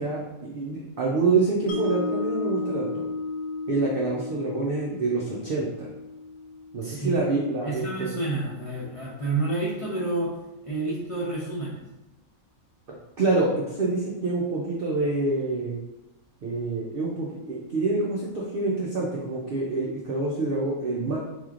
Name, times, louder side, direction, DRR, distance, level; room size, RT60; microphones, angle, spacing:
voice 1, 0.0-3.0 3.7-5.9 6.7-8.1 12.9-15.8 16.4-21.2, right 3 dB, 60° right, -3 dB, 0.5 m, -27 dB
Mallet percussion, 1.7-7.8, left 3 dB, 70° left, 1.4 m, -34 dB
voice 2, 6.8-7.1 7.6-10.3 10.6-11.8, right 2 dB, 30° left, -7 dB, 0.7 m, -29 dB
4.1 x 3.1 x 2.4 m, 0.97 s
omnidirectional pair, 1.5 m